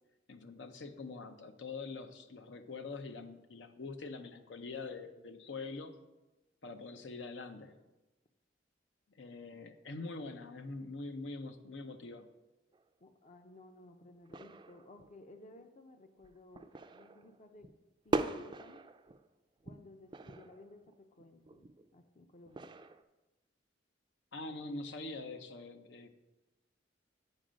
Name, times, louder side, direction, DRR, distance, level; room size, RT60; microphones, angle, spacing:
voice 1, 0.3-6.0 6.6-7.7 9.1-12.3 24.3-26.1, left 3 dB, 80° left, 7 dB, 0.7 m, -44 dB
sound 1, 12.7-12.8 14.3-15.1 15.6-15.7 16.2-17.7 18.1-19.3 19.6-21.9 22.4-23.0, right 2 dB, 25° right, 0.4 m, -40 dB
voice 2, 13.0-17.7 18.0-18.9 19.6-22.8, left 2 dB, 40° left, 7 dB, 0.5 m, -57 dB
9.0 x 5.4 x 5.1 m, 1.1 s
head